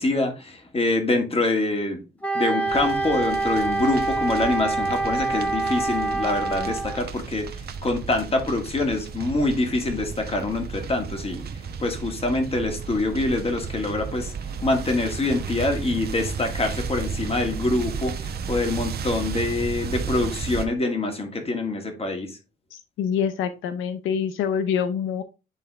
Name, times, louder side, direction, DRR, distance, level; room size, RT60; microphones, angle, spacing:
voice 1, 0.0-2.0 2.3-11.5 11.8-14.3 14.6-22.4, left 2 dB, 30° left, 2.0 m, -25 dB
Wind instrument woodwind instrument, 2.2-7.0, right 3 dB, 5° left, 1.4 m, -26 dB
sound 1, 2.7-20.7, right 6 dB, 55° right, 1.0 m, -34 dB
voice 2, 22.7-25.2, left 7 dB, 85° left, 0.7 m, -26 dB
9.1 x 3.6 x 3.4 m
cardioid pair, 90°, 20 cm